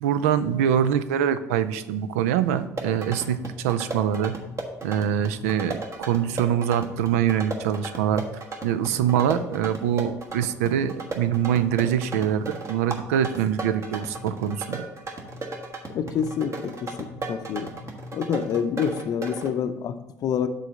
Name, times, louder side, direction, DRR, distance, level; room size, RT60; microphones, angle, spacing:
voice 1, 0.0-4.4 4.8-5.8 6.1-8.2 8.6-14.9, right 9 dB, 80° right, 12 dB, 0.4 m, -24 dB
sound 1, 2.6-19.5, right 2 dB, 40° right, 1.2 m, -36 dB
voice 2, 15.9-17.7 18.1-20.5, left 7 dB, 55° left, 10 dB, 0.6 m, -27 dB
6.4 x 3.8 x 6.3 m, 1.0 s
hypercardioid pair, 60°, 8 cm